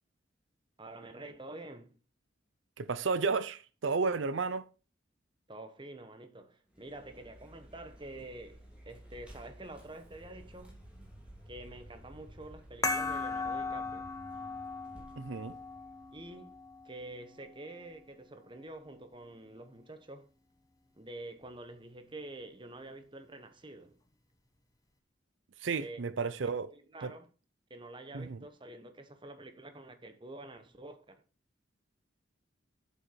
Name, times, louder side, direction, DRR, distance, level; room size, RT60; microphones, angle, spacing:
voice 1, 0.8-2.0 5.5-10.7 11.5-14.1 16.1-16.5 16.8-20.3 20.9-24.0 25.8-26.0 26.7-27.3 27.7-31.2, right 2 dB, 25° right, 1.2 m, -47 dB
voice 2, 2.8-4.6 15.2-15.5 25.6-26.7 27.0-27.1 28.1-28.4, right 4 dB, 75° right, 0.6 m, -32 dB
Vehicle, 6.7-17.0, right 1 dB, 5° right, 3.2 m, -54 dB
sound 1, 12.8-17.9, left 3 dB, 20° left, 1.2 m, -38 dB
8.1 x 7.8 x 4.6 m
head